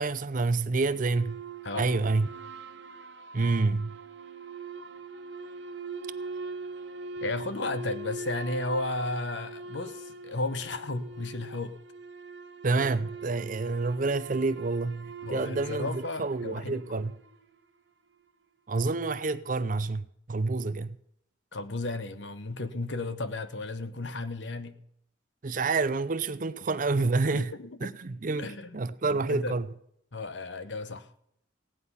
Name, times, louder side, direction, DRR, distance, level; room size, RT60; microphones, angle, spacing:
voice 1, 0.0-1.4 1.8-2.3 3.3-4.0 12.6-17.1 18.7-21.0 25.4-27.5 27.8-29.7, right 3 dB, 45° right, 0.6 m, -28 dB
sound 1, 0.9-17.5, right 3 dB, 65° right, 1.3 m, -42 dB
voice 2, 7.2-11.7 15.2-17.0 21.5-24.8 27.3-27.7 28.4-29.5 30.1-31.1, left 2 dB, 65° left, 1.0 m, -34 dB
16.5 x 10.0 x 5.6 m
head